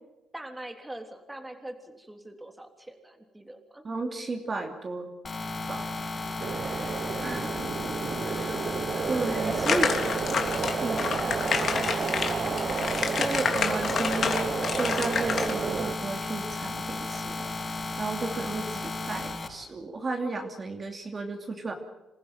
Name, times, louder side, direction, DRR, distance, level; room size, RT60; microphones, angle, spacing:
voice 1, 0.3-3.8 5.7-6.9 9.4-10.0 11.1-12.2, right 1 dB, 10° right, 5 dB, 3.4 m, -43 dB
voice 2, 3.8-5.1 5.7-5.9 7.2-7.6 8.2-8.6 9.1-10.0 10.8-11.1 13.1-17.4 18.0-21.7, right 3 dB, 35° right, 3 dB, 2.9 m, -33 dB
sound 1, 5.2-19.5, left 3 dB, 35° left, 6.3 m, -34 dB
sound 2, 6.4-15.9, right 6 dB, 50° right, 1.3 m, -32 dB
sound 3, 9.7-15.5, left 6 dB, 55° left, 3.1 m, -29 dB
27.0 x 15.5 x 9.2 m, 1.0 s
cardioid pair, 90°, 0 cm